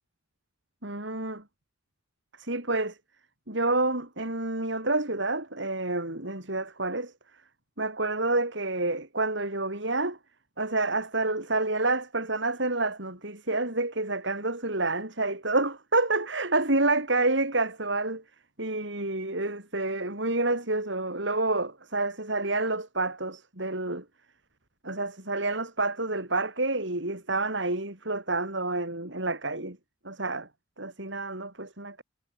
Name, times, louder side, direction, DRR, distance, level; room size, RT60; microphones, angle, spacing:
voice 1, 0.8-1.4 2.4-3.0 3.5-7.1 7.8-10.2 10.6-18.2 18.6-24.0 24.8-29.8 30.0-30.5 30.8-32.0, right 2 dB, 65° right, 6.3 m, -28 dB
head